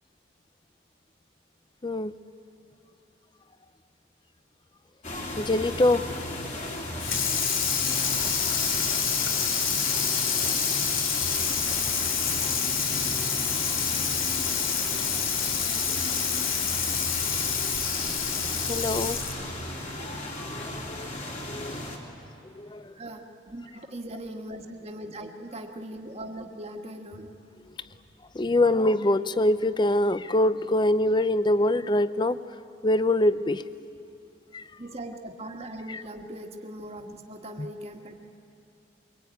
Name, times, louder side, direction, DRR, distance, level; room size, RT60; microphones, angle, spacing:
voice 1, 1.8-2.1 5.4-6.1 18.7-19.2 20.5-21.1 21.4-21.8 22.5-22.9 28.3-32.4 32.8-33.6 34.5-34.7 35.9-36.0, left 1 dB, 25° left, 14 dB, 0.5 m, -24 dB
sound 1, 5.0-22.0, left 1 dB, 40° left, 2.9 m, -36 dB
Water tap faucet / Sink (filling or washing), 7.0-19.5, left 6 dB, 90° left, 2.6 m, -27 dB
voice 2, 22.9-27.3 34.8-38.2, right 1 dB, 30° right, 3 dB, 1.7 m, -40 dB
24.0 x 23.0 x 9.3 m, 2.7 s
head